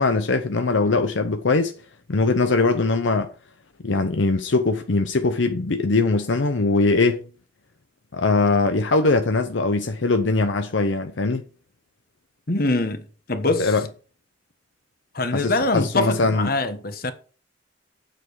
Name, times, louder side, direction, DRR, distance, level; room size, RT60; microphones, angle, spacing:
voice 1, 0.0-1.7 2.1-3.3 3.8-7.3 8.1-11.4 13.6-13.8 15.3-16.5, left 3 dB, 75° left, 0.7 m, -21 dB
voice 2, 12.5-13.7 15.1-17.1, left 2 dB, 50° left, 1.3 m, -24 dB
8.6 x 7.8 x 4.7 m
head